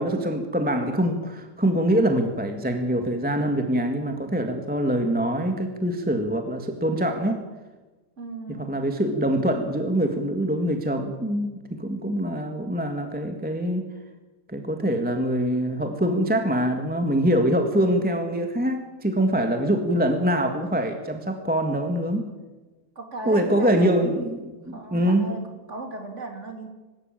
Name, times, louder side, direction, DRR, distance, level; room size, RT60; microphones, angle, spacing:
voice 1, 0.0-7.4 8.5-13.9 14.5-22.3 23.2-25.3, right 1 dB, 5° right, 5 dB, 1.5 m, -24 dB
voice 2, 8.2-8.8 22.9-24.2 24.7-26.7, right 2 dB, 35° right, 4 dB, 3.3 m, -37 dB
24.0 x 13.0 x 8.9 m, 1.2 s
omnidirectional pair, 2.2 m